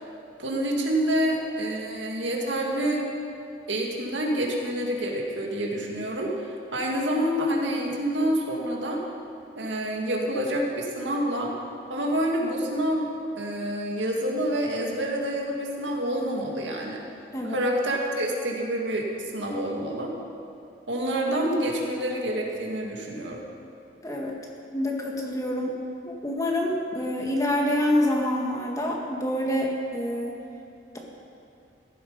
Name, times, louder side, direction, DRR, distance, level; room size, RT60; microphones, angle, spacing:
voice 1, 0.4-3.1 3.7-9.0 9.6-11.5 11.9-17.0 17.4-20.1 20.9-23.5, right 1 dB, 85° right, 0 dB, 2.1 m, -27 dB
voice 2, 24.0-24.3 24.7-25.8 26.0-30.4, left 1 dB, 20° left, -1 dB, 1.6 m, -26 dB
15.0 x 12.0 x 5.2 m, 2.6 s
head